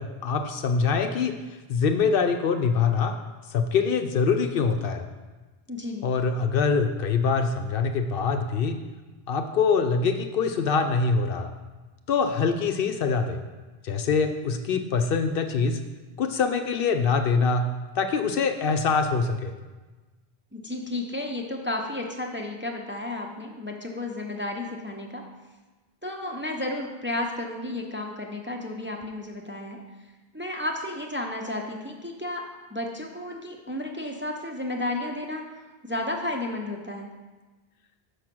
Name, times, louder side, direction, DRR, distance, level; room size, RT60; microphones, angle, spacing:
voice 1, 0.0-1.3 1.7-3.2 3.5-5.0 6.0-8.8 9.3-11.5 12.1-13.4 13.8-15.8 16.2-17.7 18.0-19.5, left 5 dB, 65° left, 7 dB, 0.7 m, -24 dB
voice 2, 5.7-6.1 20.5-25.2 26.0-29.8 30.3-32.4 32.7-35.4 35.9-37.1, left 1 dB, 15° right, 1 dB, 0.6 m, -32 dB
6.7 x 4.9 x 6.0 m, 1.2 s
omnidirectional pair, 1.0 m